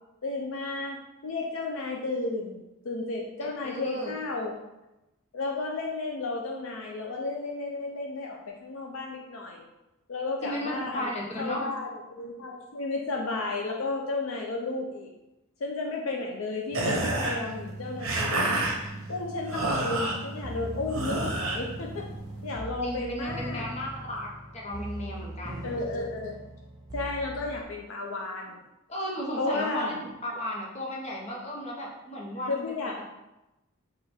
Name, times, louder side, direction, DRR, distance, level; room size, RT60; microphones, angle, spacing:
voice 1, 0.2-4.5 5.3-9.7 10.1-15.1 15.6-18.5 19.1-22.1 22.4-23.7 25.6-26.3 26.9-28.6 29.4-30.0 32.5-33.0, left 3 dB, 65° left, 1 dB, 0.5 m, -33 dB
voice 2, 3.4-4.1 10.4-11.6 17.0-17.1 22.8-24.3 24.5-25.7 28.9-33.0, equal, 30° left, -3 dB, 0.9 m, -35 dB
sound 1, 16.7-22.6, right 2 dB, 65° right, 0.8 m, -31 dB
sound 2, 20.4-27.6, right 1 dB, 20° right, 0.4 m, -40 dB
4.7 x 2.5 x 4.3 m, 0.97 s
head